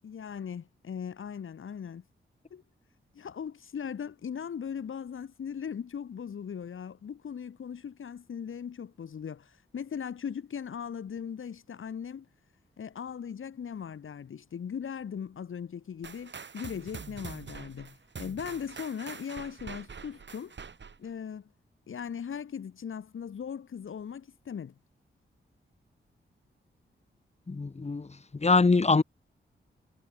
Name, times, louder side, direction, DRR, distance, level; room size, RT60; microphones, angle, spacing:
voice 1, 0.0-2.0 2.5-2.6 3.1-12.3 12.8-20.5 21.0-21.5 21.9-24.7, left 7 dB, 75° left, 2.7 m, -39 dB
sound 1, 16.0-21.1, right 5 dB, 60° right, 4.5 m, -44 dB
voice 2, 27.5-28.1 28.3-29.0, left 3 dB, 30° left, 1.3 m, -23 dB
cardioid pair, 50°, 21 cm